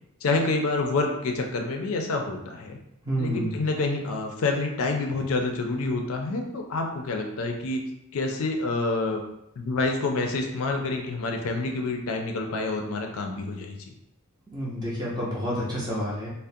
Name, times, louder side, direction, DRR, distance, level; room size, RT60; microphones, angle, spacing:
voice 1, 0.2-2.8 3.2-7.8 8.1-9.2 9.6-13.8, left 3 dB, 65° left, 3 dB, 0.4 m, -27 dB
voice 2, 3.1-3.5 14.5-16.3, equal, 20° right, -7 dB, 0.5 m, -29 dB
2.3 x 2.0 x 2.6 m, 0.84 s
head